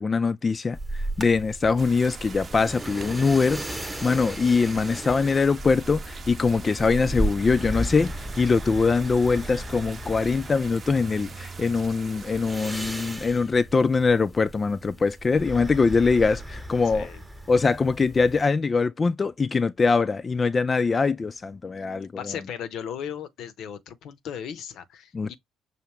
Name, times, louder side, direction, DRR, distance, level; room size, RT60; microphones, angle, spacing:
voice 1, 0.0-17.1 17.5-22.4 25.1-25.3, left 4 dB, 30° left, 0.4 m, -23 dB
sound 1, 0.7-18.4, right 1 dB, 5° right, 1.0 m, -35 dB
sound 2, 1.8-13.2, right 5 dB, 40° right, 0.7 m, -44 dB
voice 2, 22.2-25.3, left 8 dB, 70° left, 0.7 m, -36 dB
5.7 x 2.7 x 3.2 m
supercardioid pair, 70°, 0 cm